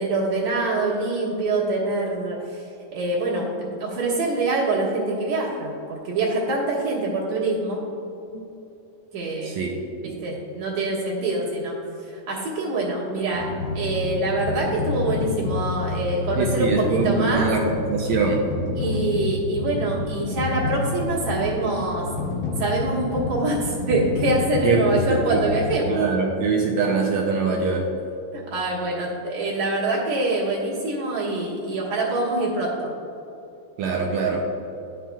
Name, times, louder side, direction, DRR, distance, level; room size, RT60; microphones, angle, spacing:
voice 1, 0.0-2.6 2.9-7.8 9.1-9.5 10.2-11.8 12.1-13.5 13.7-17.5 18.8-22.1 22.6-26.0 28.3-32.9, right 2 dB, 60° right, -5 dB, 2.6 m, -25 dB
sound 1, 13.3-25.8, left 3 dB, 75° left, 2.6 m, -29 dB
voice 2, 16.3-18.4 24.6-25.4 25.9-27.9 33.8-34.4, right 4 dB, 80° right, 0 dB, 1.6 m, -23 dB
11.5 x 6.1 x 2.3 m, 2.8 s
omnidirectional pair, 3.7 m